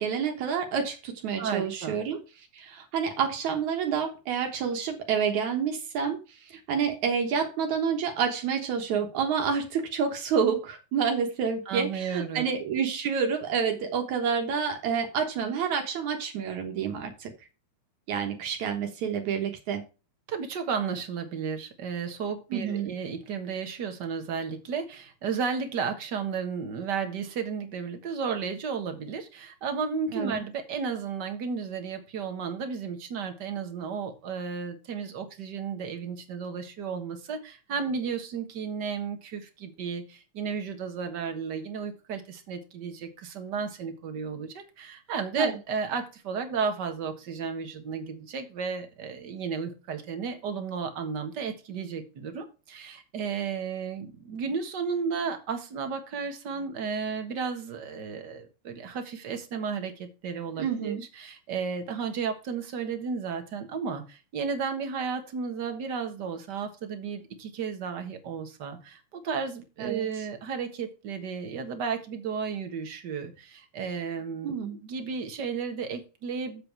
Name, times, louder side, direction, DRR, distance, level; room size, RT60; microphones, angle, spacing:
voice 1, 0.0-17.3 18.1-19.8 22.5-22.9 30.1-30.4 45.4-45.6 60.6-61.0 69.8-70.1 74.4-74.8, right 6 dB, 75° right, 3 dB, 2.6 m, -29 dB
voice 2, 1.4-2.0 11.7-12.5 20.3-76.6, right 6 dB, 45° right, 6 dB, 1.7 m, -33 dB
7.8 x 7.7 x 4.6 m, 0.31 s
omnidirectional pair, 3.3 m